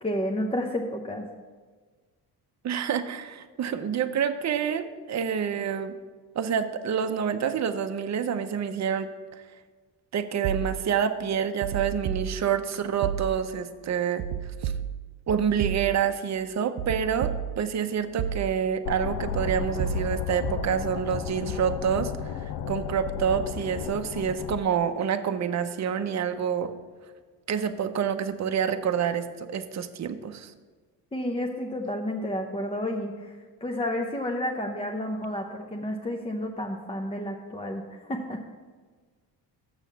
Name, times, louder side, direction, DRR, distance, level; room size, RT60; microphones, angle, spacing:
voice 1, 0.0-1.3 31.1-38.4, left 1 dB, 15° left, 2 dB, 0.7 m, -31 dB
voice 2, 2.6-6.0 6.4-9.4 10.1-14.2 14.6-14.7 15.3-26.7 27.5-30.5, right 7 dB, 40° right, 9 dB, 0.7 m, -27 dB
sound 1, 10.4-11.1 11.6-12.7 13.0-13.6 14.2-16.2 16.8-17.8 18.2-18.8 19.3-20.8, right 9 dB, 85° right, 0.5 m, -33 dB
sound 2, 18.8-24.6, left 9 dB, 70° left, 0.5 m, -33 dB
7.1 x 6.4 x 5.7 m, 1.4 s
cardioid pair, 80°, 41 cm